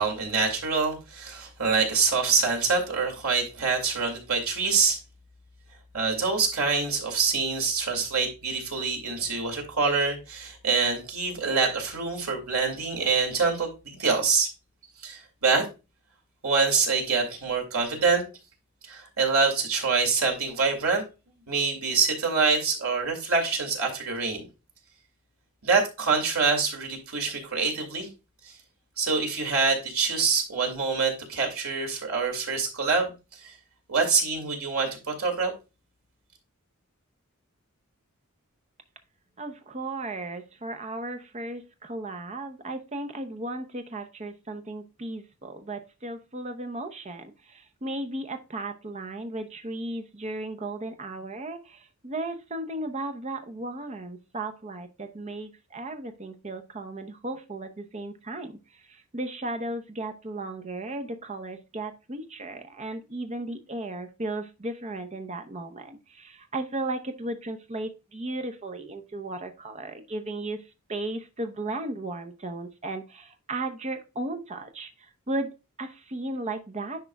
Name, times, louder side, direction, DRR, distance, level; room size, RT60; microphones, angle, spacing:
voice 1, 0.0-5.0 5.9-14.5 15.0-15.7 16.4-18.2 18.9-21.0 21.5-24.5 25.6-28.1 28.4-28.5 29.0-33.5 33.9-35.5, right 4 dB, 80° right, 2 dB, 2.3 m, -25 dB
voice 2, 39.4-77.0, right 2 dB, 30° right, 7 dB, 0.8 m, -35 dB
10.0 x 4.7 x 2.3 m, 0.28 s
head